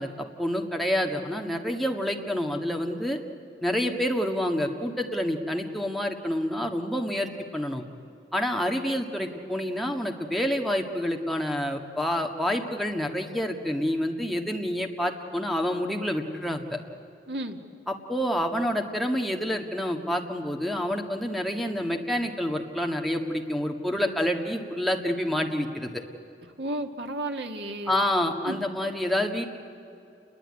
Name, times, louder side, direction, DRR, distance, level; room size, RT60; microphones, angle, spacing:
voice 1, 0.0-3.2 3.6-7.8 8.3-16.8 17.9-26.0 27.9-29.6, equal, ahead, 2 dB, 1.6 m, -28 dB
voice 2, 17.3-17.6 26.6-28.0 28.5-28.6, right 1 dB, 85° right, 5 dB, 1.9 m, -33 dB
28.5 x 21.0 x 9.8 m, 2.7 s
head